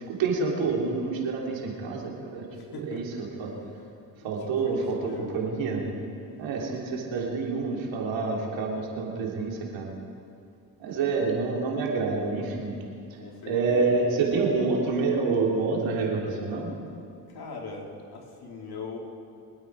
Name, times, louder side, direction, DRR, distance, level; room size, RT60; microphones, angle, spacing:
voice 1, 0.1-2.4 2.7-3.5 4.2-5.8 6.4-9.9 10.8-12.7 13.1-13.2 13.4-16.7, right 4 dB, 75° right, -1 dB, 3.3 m, -27 dB
voice 2, 2.5-4.0 4.2-5.4 10.9-11.3 13.2-14.0 17.3-19.0, left 3 dB, 55° left, -1 dB, 3.4 m, -41 dB
25.0 x 8.9 x 4.7 m, 2.4 s
supercardioid pair, 80°, 46 cm